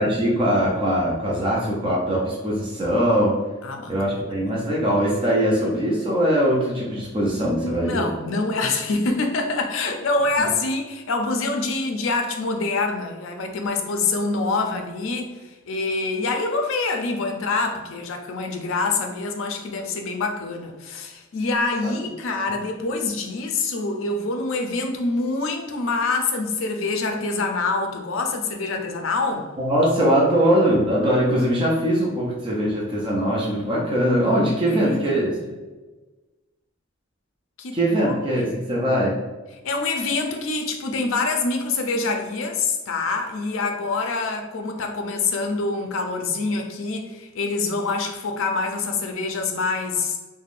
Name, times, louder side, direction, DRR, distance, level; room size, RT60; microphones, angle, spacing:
voice 1, 0.0-3.4 3.9-8.0 21.8-21.9 29.6-35.4 37.7-39.2, equal, 25° right, -4 dB, 0.4 m, -21 dB
voice 2, 3.6-4.3 7.5-15.3 15.7-29.5 34.7-35.4 37.6-38.5 39.6-50.2, left 3 dB, 70° left, 4 dB, 0.4 m, -26 dB
3.4 x 2.2 x 2.4 m, 1.2 s
head